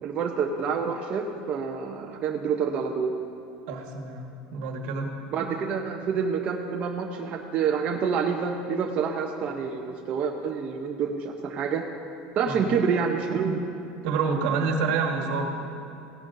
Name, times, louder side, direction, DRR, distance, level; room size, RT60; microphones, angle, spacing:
voice 1, 0.0-3.1 5.3-11.8 12.3-13.7, right 6 dB, 35° right, 1 dB, 0.6 m, -27 dB
voice 2, 3.7-5.1 12.4-12.5 14.0-15.5, right 5 dB, 70° right, 3 dB, 1.4 m, -27 dB
17.0 x 10.5 x 2.6 m, 2.8 s
supercardioid pair, 140°, 4 cm